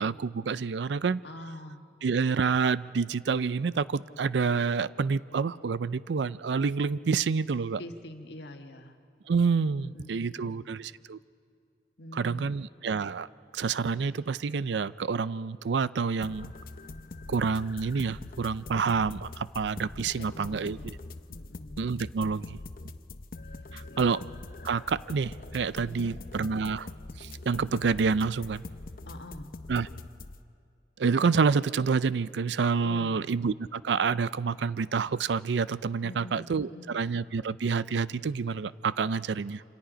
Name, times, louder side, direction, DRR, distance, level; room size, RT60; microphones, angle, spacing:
voice 1, 0.0-1.2 2.0-7.8 9.3-11.2 12.1-13.3 13.5-16.5 17.3-21.0 21.8-22.6 23.7-24.2 24.6-26.9 27.2-28.6 29.7-29.9 31.0-39.6, right 5 dB, 85° right, 17 dB, 0.5 m, -28 dB
voice 2, 1.2-1.8 7.8-9.0 9.7-10.7 12.0-12.5 20.2-21.8 23.4-24.2 25.8-26.3 29.1-29.5 32.8-33.2 36.0-37.0, left 1 dB, 80° left, 5 dB, 1.5 m, -45 dB
sound 1, 16.2-30.4, left 2 dB, 50° left, 0.7 m, -43 dB
27.0 x 26.0 x 5.1 m, 2.4 s
head